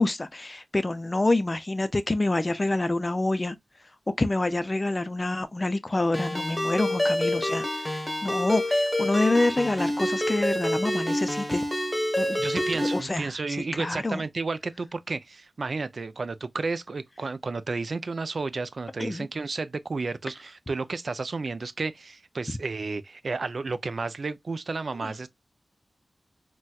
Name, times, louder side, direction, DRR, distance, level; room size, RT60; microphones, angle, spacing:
voice 1, 0.0-3.6 4.2-11.6 12.2-12.4 12.9-13.3 13.7-14.2 19.0-19.3 25.0-25.1, left 2 dB, 30° left, 0.4 m, -27 dB
Ringtone, 6.1-13.0, left 1 dB, 5° left, 1.0 m, -27 dB
voice 2, 12.4-25.3, right 3 dB, 60° right, 0.3 m, -32 dB
4.1 x 2.2 x 2.2 m
wide cardioid pair, 90°, 0 cm